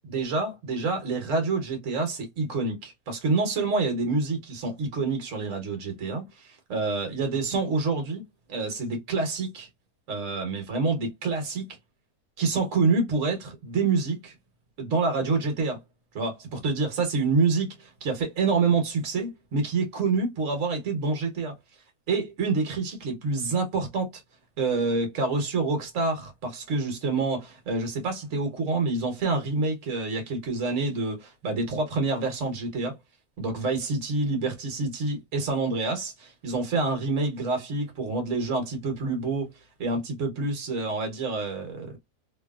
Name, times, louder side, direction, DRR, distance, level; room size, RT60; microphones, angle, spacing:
voice 1, 0.1-8.2 8.5-9.7 10.1-11.7 12.4-14.3 14.8-15.8 16.1-21.5 22.1-24.1 24.6-33.0 33.4-39.5 39.8-42.0, right 3 dB, 60° right, 1.4 m, -27 dB
3.0 x 2.4 x 2.3 m
omnidirectional pair, 1.6 m